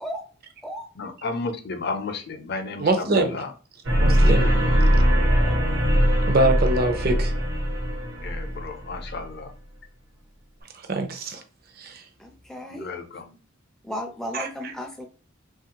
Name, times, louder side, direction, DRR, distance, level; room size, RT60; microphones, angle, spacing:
voice 1, 1.0-3.5 4.3-4.6 8.2-9.5 12.7-13.4, left 3 dB, 55° left, 7 dB, 0.5 m, -33 dB
voice 2, 2.8-3.4 4.0-4.6 6.3-7.3 10.9-11.4 11.8-12.0 14.3-14.5, right 2 dB, 50° right, 6 dB, 0.5 m, -23 dB
sound 1, 3.8-9.1, equal, 75° right, 1.0 m, -21 dB
voice 3, 12.2-12.9 13.8-15.1, equal, ahead, 2 dB, 0.4 m, -34 dB
3.0 x 2.4 x 2.8 m, 0.37 s
head